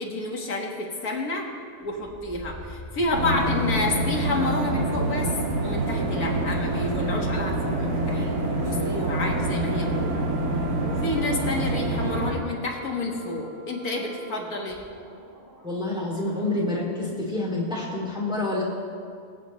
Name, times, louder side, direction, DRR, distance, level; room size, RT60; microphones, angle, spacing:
voice 1, 0.0-1.5 1.8-5.3 5.6-8.3 8.6-10.2 10.8-14.9, left 2 dB, 85° left, 0 dB, 2.1 m, -29 dB
sound 1, 1.8-16.8 17.0-17.2, right 1 dB, 15° left, 2.9 m, -42 dB
sound 2, 3.1-12.3, right 1 dB, 90° right, 1.9 m, -26 dB
voice 2, 15.6-18.6, left 2 dB, 5° right, -5 dB, 2.5 m, -28 dB
24.0 x 8.5 x 3.1 m, 2.2 s
omnidirectional pair, 1.5 m